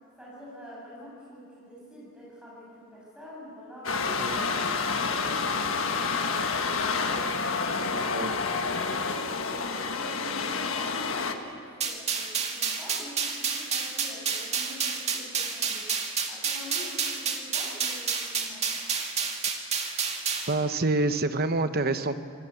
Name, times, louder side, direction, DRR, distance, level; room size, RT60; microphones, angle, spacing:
voice 1, 0.2-4.4 4.9-10.5 10.8-15.9 16.3-18.7, left 1 dB, 5° right, -6 dB, 7.8 m, -46 dB
sound 1, 3.8-11.3, left 4 dB, 70° left, 1.5 m, -29 dB
sound 2, 11.8-20.5, right 6 dB, 30° right, 2.0 m, -30 dB
voice 2, 20.5-22.2, right 2 dB, 45° right, 10 dB, 0.9 m, -27 dB
26.0 x 17.5 x 8.0 m, 2.3 s
head